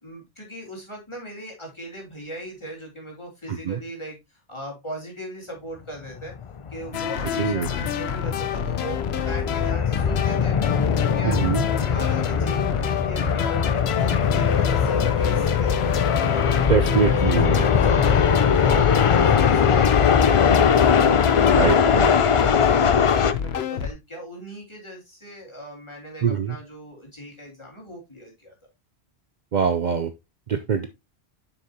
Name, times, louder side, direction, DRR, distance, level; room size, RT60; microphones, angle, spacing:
voice 1, 0.0-6.3 6.7-11.4 11.7-21.0 21.4-28.5, equal, 25° left, -1 dB, 3.1 m, -39 dB
sound 1, 6.2-23.3, left 7 dB, 45° left, 0.4 m, -21 dB
sound 2, 6.9-23.9, left 7 dB, 75° left, 1.0 m, -28 dB
voice 2, 7.4-7.7 11.2-11.6 16.7-17.7 21.6-22.1 26.2-26.5 29.5-30.1 30.5-30.9, right 7 dB, 50° right, 9 dB, 0.7 m, -23 dB
7.6 x 6.2 x 2.8 m, 0.22 s
omnidirectional pair, 1.1 m